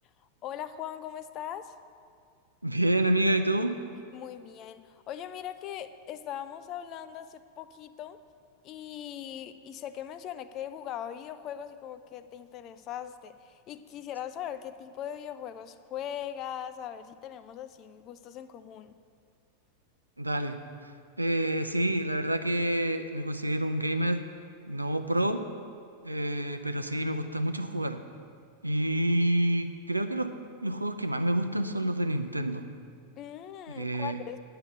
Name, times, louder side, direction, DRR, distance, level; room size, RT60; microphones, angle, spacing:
voice 1, 0.4-1.8 4.1-8.2 8.6-19.0 33.2-34.4, left 10 dB, 35° left, 12 dB, 0.5 m, -40 dB
voice 2, 2.6-3.8 20.2-20.9 21.2-24.2 24.7-25.5 26.0-28.0 28.6-30.3 30.6-32.6 33.7-34.2, right 1 dB, 85° right, 8 dB, 0.6 m, -28 dB
9.8 x 6.8 x 8.0 m, 2.2 s
figure-of-eight pair, 90°, 0 cm